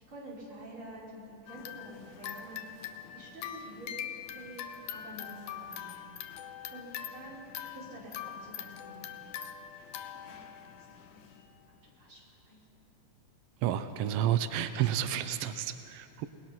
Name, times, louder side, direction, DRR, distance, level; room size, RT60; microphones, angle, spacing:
voice 1, 0.0-2.7 3.1-5.9 6.2-9.1 9.7-11.4 11.8-12.6, right 1 dB, 40° right, -5 dB, 5.9 m, -49 dB
sound 1, 1.5-11.5, left 9 dB, 90° left, 2.5 m, -43 dB
voice 2, 13.6-16.3, right 11 dB, 75° right, 10 dB, 1.4 m, -30 dB
28.0 x 19.5 x 5.9 m, 2.9 s
omnidirectional pair, 3.4 m